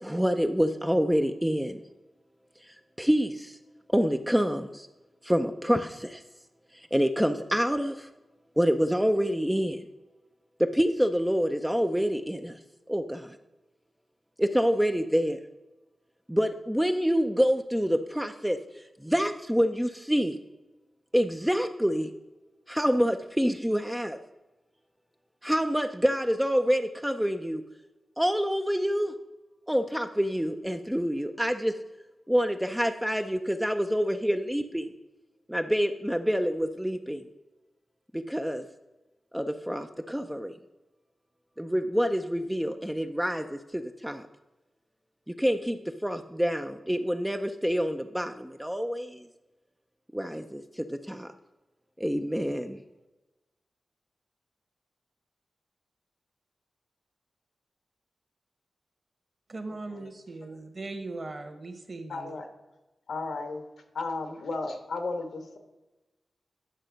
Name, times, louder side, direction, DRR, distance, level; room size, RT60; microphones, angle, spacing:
voice 1, 0.0-1.8 2.7-3.6 3.9-4.9 5.2-6.2 6.7-8.1 8.6-9.8 10.6-12.6 12.9-13.4 14.4-15.4 16.3-18.6 19.0-20.4 21.1-22.1 22.7-24.2 25.4-27.6 28.2-29.1 29.7-31.7 32.3-34.9 35.5-37.3 38.1-38.6 39.3-40.5 41.6-44.2 45.3-49.3 50.1-51.3 52.0-52.8, equal, 5° right, 6 dB, 0.4 m, -27 dB
voice 2, 59.5-62.3, right 2 dB, 35° right, 6 dB, 1.2 m, -39 dB
voice 3, 62.1-62.4 63.1-63.6 63.9-65.6, left 3 dB, 85° left, 6 dB, 1.4 m, -34 dB
10.0 x 6.6 x 5.1 m, 1.1 s
wide cardioid pair, 155°, 0 cm